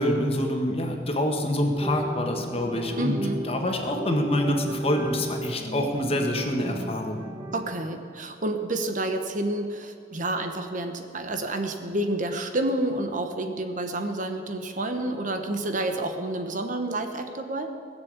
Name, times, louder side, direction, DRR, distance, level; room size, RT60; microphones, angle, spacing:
voice 1, 0.0-7.2, left 1 dB, 35° left, 3 dB, 1.6 m, -26 dB
sound 1, 1.8-7.8, equal, 25° right, 1.7 m, -36 dB
voice 2, 3.0-3.4 7.5-17.7, right 1 dB, 45° right, 6 dB, 1.1 m, -29 dB
18.0 x 7.2 x 8.2 m, 2.4 s
head